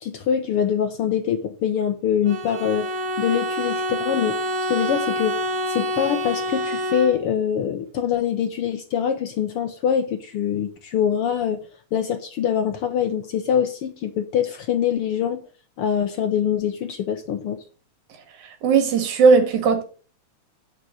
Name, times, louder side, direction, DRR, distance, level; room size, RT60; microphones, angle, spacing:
voice 1, 0.0-4.4 4.7-5.4 5.7-11.6 11.9-15.4 15.8-17.6, left 8 dB, 70° left, 1.4 m, -24 dB
Bowed string instrument, 2.3-7.5, equal, 65° right, 2.7 m, -27 dB
voice 2, 18.6-19.8, right 5 dB, 80° right, 3.1 m, -17 dB
9.4 x 6.0 x 6.3 m
omnidirectional pair, 3.3 m